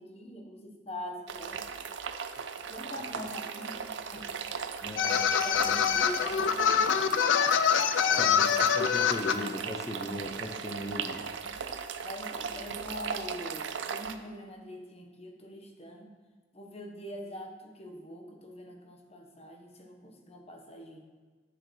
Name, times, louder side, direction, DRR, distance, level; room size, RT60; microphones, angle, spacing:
voice 1, 0.0-1.8 2.6-3.8 4.1-4.7 5.1-7.7 8.1-8.3 11.5-16.1 16.5-21.0, equal, 35° left, 2 dB, 1.1 m, -43 dB
sound 1, 1.3-14.2, right 6 dB, 75° right, 0.5 m, -38 dB
voice 2, 4.8-5.2 5.7-5.8 8.2-11.2, left 1 dB, 15° left, 5 dB, 0.6 m, -38 dB
sound 2, 5.0-9.4, left 7 dB, 90° left, 0.4 m, -25 dB
9.3 x 7.4 x 3.2 m, 1.4 s
head